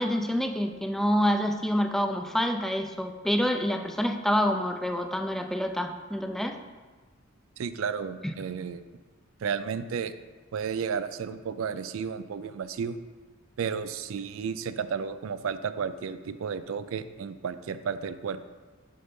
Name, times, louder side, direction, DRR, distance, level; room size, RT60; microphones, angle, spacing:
voice 1, 0.0-6.6 8.2-8.3, equal, ahead, 5 dB, 0.3 m, -27 dB
voice 2, 7.6-8.8 9.4-10.1 10.5-13.0 13.6-18.4, right 6 dB, 75° right, 12 dB, 0.4 m, -32 dB
7.6 x 3.9 x 5.2 m, 1.3 s
head